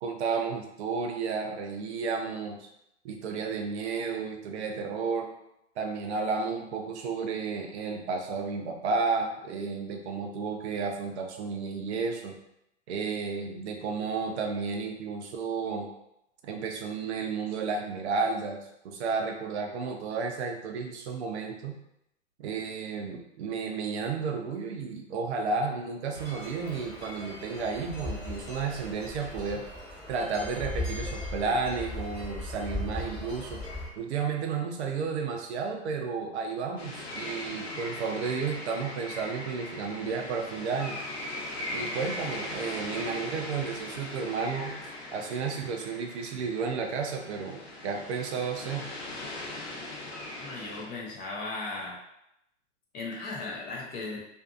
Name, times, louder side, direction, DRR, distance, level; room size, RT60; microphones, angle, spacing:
voice 1, 0.0-2.7 3.0-5.3 5.8-12.3 12.9-15.9 16.4-21.8 22.4-29.6 30.1-33.6 34.0-41.0 41.7-44.8 45.1-48.9, right 5 dB, 60° right, 3 dB, 0.6 m, -32 dB
sound 1, 26.1-33.9, left 1 dB, 5° left, 1.1 m, -38 dB
sound 2, 36.8-50.9, left 1 dB, 60° left, 0.8 m, -39 dB
voice 2, 50.4-52.0 52.9-54.2, left 3 dB, 25° left, -3 dB, 0.5 m, -36 dB
2.5 x 2.5 x 2.4 m, 0.81 s
hypercardioid pair, 110°, 38 cm